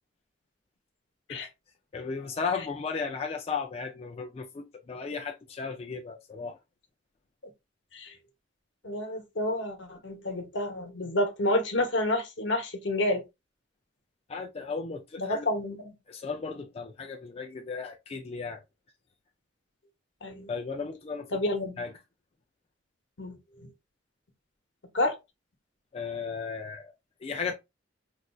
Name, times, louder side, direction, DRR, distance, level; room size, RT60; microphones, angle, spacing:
voice 1, 1.9-6.6 14.3-15.5 16.1-18.6 20.5-21.4 21.8-21.9 25.9-26.9 27.2-27.5, left 5 dB, 35° left, 0.3 m, -35 dB
voice 2, 8.8-13.2 15.2-15.8 20.2-20.5 21.3-21.7 23.2-23.4 24.9-25.2, left 1 dB, 80° left, 0.9 m, -29 dB
4.1 x 2.5 x 2.2 m
head